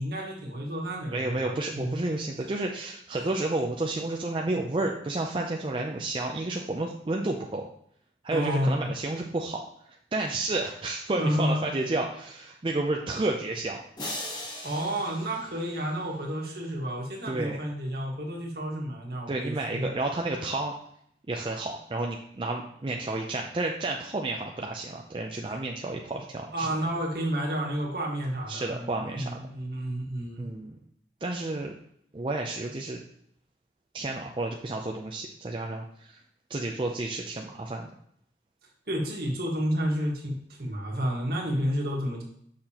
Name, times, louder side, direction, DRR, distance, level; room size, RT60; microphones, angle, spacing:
voice 1, 0.0-2.0 8.3-8.9 11.1-11.6 14.6-19.9 25.4-25.5 26.5-30.4 38.9-42.2, equal, 55° right, -1 dB, 1.5 m, -30 dB
voice 2, 1.1-7.7 8.2-13.8 17.2-17.6 19.3-20.7 21.3-26.7 28.5-29.2 30.4-30.8 31.2-31.7 32.1-33.0 33.9-36.2 36.5-37.9, right 2 dB, 30° right, 1 dB, 0.4 m, -31 dB
sound 1, 14.0-16.3, left 1 dB, 25° left, 1.0 m, -39 dB
6.7 x 5.9 x 2.9 m, 0.68 s
head